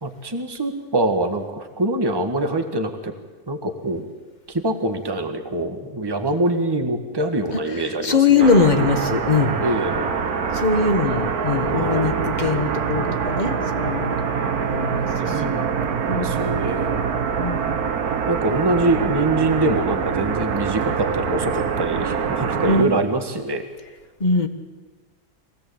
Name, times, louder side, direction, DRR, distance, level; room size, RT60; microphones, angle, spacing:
voice 1, 0.0-3.1 3.5-4.0 4.5-8.5 9.6-10.1 11.7-12.1 15.3-15.6 16.2-17.0 18.3-23.6, right 2 dB, 15° right, 6 dB, 1.6 m, -24 dB
voice 2, 8.0-9.6 10.5-14.2 14.7-15.6 16.0-16.6 17.4-17.8 22.7-22.9 24.2-24.5, left 4 dB, 30° left, 7 dB, 1.5 m, -21 dB
sound 1, 8.4-22.8, right 6 dB, 65° right, 1.7 m, -24 dB
24.0 x 17.0 x 8.7 m, 1.3 s
omnidirectional pair, 1.7 m